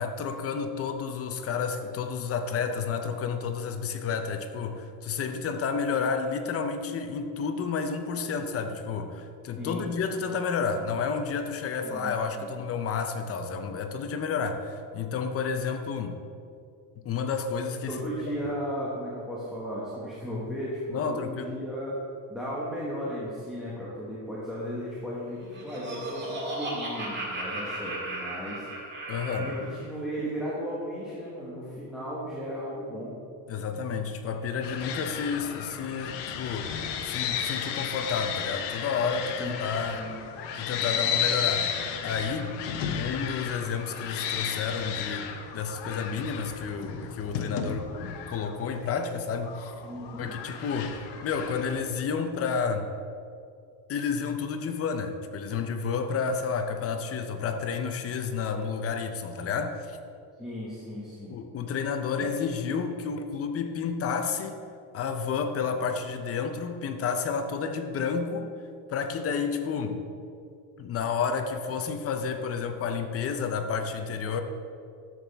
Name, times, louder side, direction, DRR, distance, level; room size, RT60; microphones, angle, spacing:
voice 1, 0.0-16.2 17.0-18.0 18.4-18.5 20.9-21.5 29.1-29.5 33.5-40.0 40.6-42.5 42.9-49.7 50.2-52.9 53.9-60.0 61.3-64.6 64.9-68.5 68.9-70.0 70.8-74.4, left 5 dB, 30° left, 7 dB, 0.6 m, -31 dB
voice 2, 11.8-12.6 17.9-22.0 22.3-28.7 29.4-33.2 39.4-40.1 49.8-50.3 60.4-61.4, equal, ahead, -8 dB, 1.3 m, -35 dB
Laughter, 25.2-29.7, right 1 dB, 25° right, 1.8 m, -35 dB
sound 1, 34.6-51.8, left 8 dB, 60° left, 1.0 m, -33 dB
12.5 x 7.6 x 3.4 m, 2.5 s
cardioid pair, 155°, 46 cm